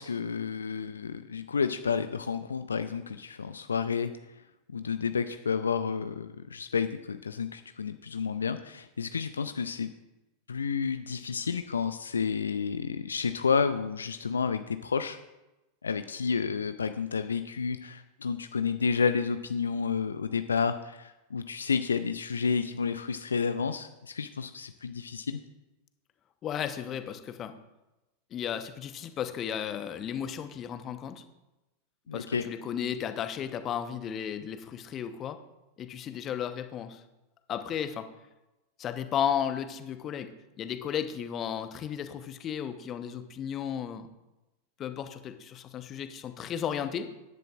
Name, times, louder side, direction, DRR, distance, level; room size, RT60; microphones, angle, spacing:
voice 1, 0.0-4.1 4.7-9.9 10.5-15.2 15.8-25.4 32.1-32.4, left 5 dB, 70° left, 10 dB, 0.4 m, -30 dB
voice 2, 26.4-27.5 28.3-31.2 32.1-35.4 35.8-37.0 37.5-38.1 38.8-40.3 40.6-44.1 44.8-47.1, left 9 dB, 30° left, 9 dB, 0.9 m, -34 dB
14.0 x 10.5 x 2.4 m, 1.0 s
figure-of-eight pair, 90°, 0 cm